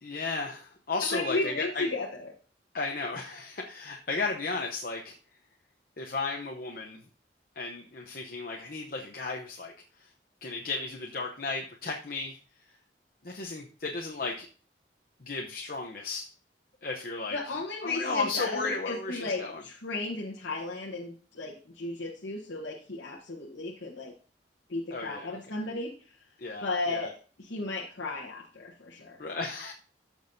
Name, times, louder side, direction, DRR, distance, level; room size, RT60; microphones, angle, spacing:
voice 1, 0.0-1.9 2.7-5.1 6.0-7.0 7.6-9.7 10.4-12.4 13.2-14.5 15.3-16.3 16.8-17.4 17.8-19.6 24.9-25.3 26.4-27.1 29.2-29.7, left 3 dB, 50° left, 1 dB, 0.8 m, -34 dB
voice 2, 1.1-2.3 17.3-24.1 24.7-26.2 26.6-27.1 27.4-29.2, left 2 dB, 90° left, -3 dB, 1.1 m, -34 dB
14.0 x 6.1 x 2.7 m, 0.40 s
head